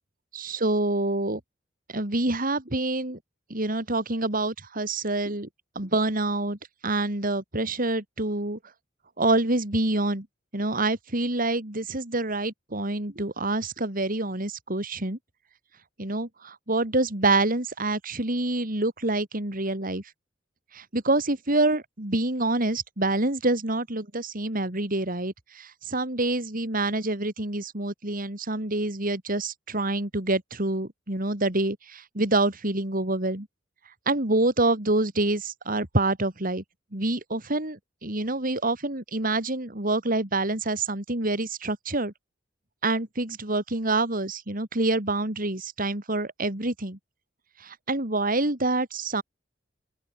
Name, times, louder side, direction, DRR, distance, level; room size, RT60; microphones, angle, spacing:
voice 1, 0.3-1.4 1.9-3.2 3.5-5.5 5.8-6.6 6.8-8.6 9.2-10.3 10.5-15.2 16.0-20.0 20.7-33.5 34.1-36.6 36.9-42.1 42.8-47.0 47.6-49.2, right 2 dB, 50° right, 3.8 m, -27 dB
open air
head